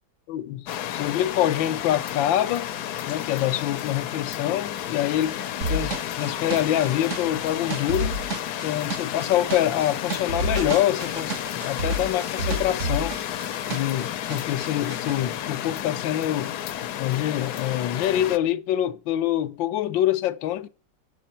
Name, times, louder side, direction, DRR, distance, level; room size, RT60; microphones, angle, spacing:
voice 1, 0.3-2.7 3.0-5.4 5.7-8.2 8.6-13.2 13.6-16.5 17.0-20.7, left 12 dB, 85° left, 1.5 m, -25 dB
sound 1, 0.7-18.4, left 11 dB, 65° left, 1.1 m, -32 dB
sound 2, 5.6-14.0 14.3-15.1, right 1 dB, 45° right, 1.6 m, -30 dB
9.1 x 7.7 x 4.3 m
omnidirectional pair, 2.0 m